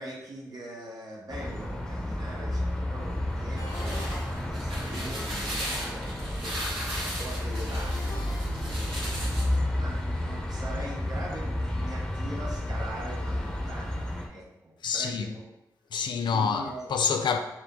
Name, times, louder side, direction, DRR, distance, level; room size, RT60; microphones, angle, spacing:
voice 1, 0.0-15.5 16.3-16.9, right 1 dB, 50° right, 1.5 m, -42 dB
sound 1, 1.3-14.3, left 1 dB, 10° left, 1.2 m, -31 dB
sound 2, 3.4-9.6, equal, 80° right, 1.6 m, -37 dB
Ringtone, 3.6-5.2 7.7-9.4, left 2 dB, 55° left, 1.1 m, -46 dB
voice 2, 14.8-15.3 15.9-17.4, left 6 dB, 70° left, 0.4 m, -27 dB
4.9 x 2.3 x 3.9 m
supercardioid pair, 40°, 8 cm